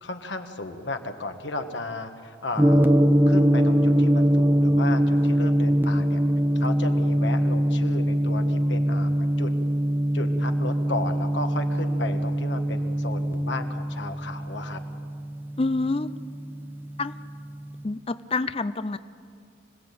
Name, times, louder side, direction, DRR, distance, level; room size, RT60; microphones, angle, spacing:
voice 1, 0.0-2.9 3.3-6.2 6.6-9.5 10.1-14.8, left 2 dB, 65° left, 6 dB, 1.6 m, -34 dB
Gong, 2.6-16.7, equal, 10° right, 0.7 m, -22 dB
voice 2, 15.6-16.1 17.0-17.1 17.8-19.0, left 3 dB, 30° left, 13 dB, 0.5 m, -27 dB
25.5 x 17.5 x 8.6 m, 2.4 s
head